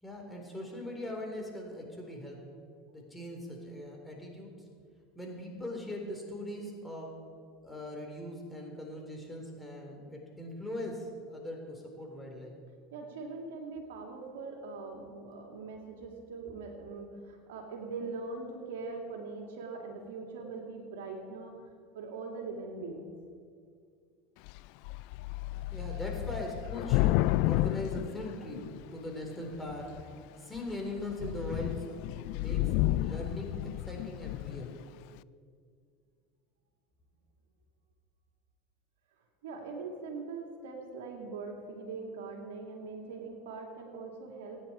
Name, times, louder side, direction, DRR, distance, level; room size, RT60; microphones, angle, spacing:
voice 1, 0.0-2.4 2.9-4.5 5.1-7.2 7.6-12.5 25.7-28.6 28.9-29.9 30.4-31.9 32.3-33.6 33.9-34.7, left 1 dB, 10° left, 0 dB, 4.0 m, -40 dB
voice 2, 12.9-21.5 21.9-23.1 39.4-44.6, right 4 dB, 80° right, 2 dB, 2.6 m, -41 dB
Thunder / Rain, 24.5-24.6 24.8-29.0 29.7-30.1 30.6-30.7 31.0-34.7, left 18 dB, 65° left, 0.3 m, -31 dB
25.0 x 10.0 x 4.5 m, 2.2 s
hypercardioid pair, 95°, 0 cm